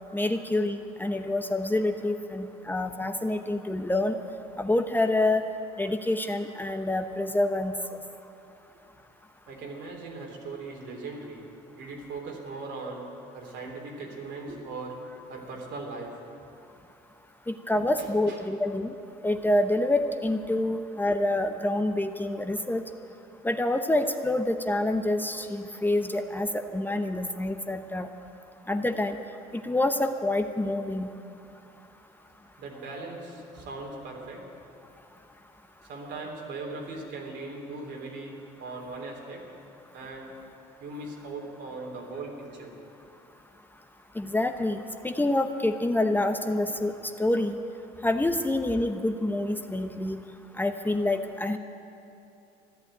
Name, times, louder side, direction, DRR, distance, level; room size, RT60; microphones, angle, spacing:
voice 1, 0.1-4.2 4.6-5.4 5.8-8.0 17.5-18.9 19.2-22.8 23.4-28.1 28.7-29.2 29.6-31.1 44.2-44.8 45.0-46.9 47.2-47.6 48.0-50.2 50.6-51.6, left 1 dB, 10° left, 6 dB, 0.8 m, -27 dB
voice 2, 9.5-11.4 11.7-13.1 13.3-15.0 15.3-16.1 17.7-18.4 32.6-34.7 35.8-39.4 39.9-40.3 40.8-42.8, right 3 dB, 70° right, 1 dB, 3.4 m, -39 dB
14.0 x 11.0 x 9.1 m, 2.8 s
cardioid pair, 95°, 19 cm